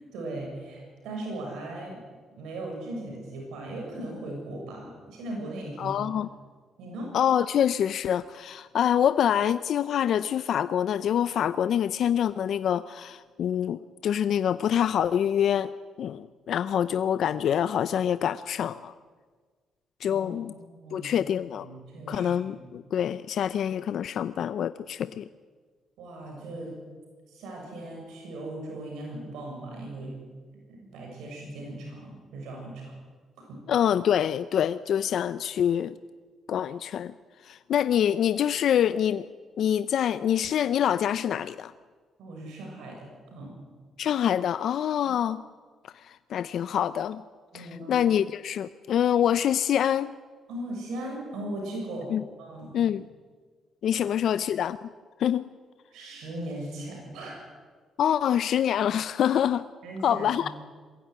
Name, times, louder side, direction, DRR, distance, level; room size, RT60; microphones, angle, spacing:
voice 1, 0.0-2.0 2.4-6.2 6.8-7.1 20.1-20.5 20.8-22.7 26.0-26.7 27.3-30.1 30.7-32.9 33.4-33.6 42.2-43.5 47.5-47.9 50.5-52.1 52.4-52.7 55.9-57.4 59.8-60.5, right 1 dB, 85° right, 0 dB, 6.9 m, -38 dB
voice 2, 5.8-6.3 7.1-15.7 16.0-18.9 20.0-20.5 20.9-21.6 22.1-25.3 33.7-36.0 36.5-37.1 37.4-39.2 39.6-41.7 44.0-45.4 46.0-47.2 47.5-50.1 52.1-52.2 52.7-53.0 53.8-54.9 55.2-55.4 58.0-59.6 60.0-60.5, left 9 dB, 70° left, 13 dB, 0.6 m, -26 dB
22.0 x 15.5 x 9.5 m, 1.5 s
cardioid pair, 90°, 0 cm